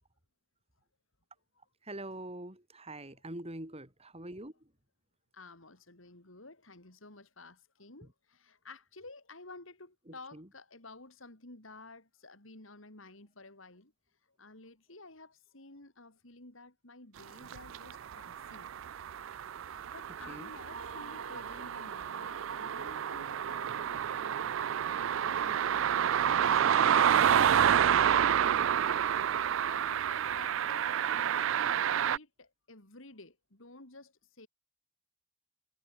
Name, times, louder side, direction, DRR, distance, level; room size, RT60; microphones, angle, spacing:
voice 1, 1.9-4.5 10.1-10.5 20.3-20.5, right 1 dB, 30° right, 5.3 m, -44 dB
voice 2, 5.3-13.9 14.4-18.7 19.7-28.4 29.1-34.5, left 2 dB, 75° left, 4.3 m, -53 dB
sound 1, 17.5-32.2, right 9 dB, 70° right, 0.4 m, -29 dB
sound 2, 20.6-24.4, right 4 dB, 90° right, 5.4 m, -48 dB
head